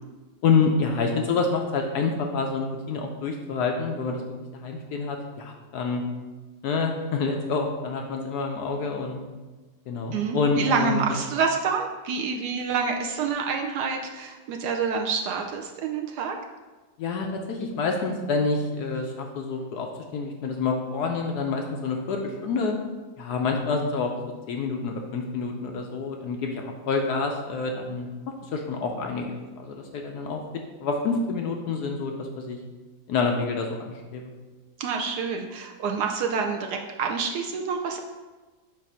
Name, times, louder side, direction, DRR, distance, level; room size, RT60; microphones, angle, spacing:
voice 1, 0.4-4.2 4.5-6.0 6.6-9.2 9.9-11.1 17.0-22.8 23.2-24.1 24.5-28.1 28.4-30.4 30.8-32.6 33.1-34.3, left 4 dB, 70° left, 2 dB, 1.0 m, -27 dB
voice 2, 10.1-16.4 34.8-38.0, right 5 dB, 75° right, 3 dB, 1.0 m, -27 dB
7.2 x 2.5 x 5.5 m, 1.3 s
omnidirectional pair, 2.0 m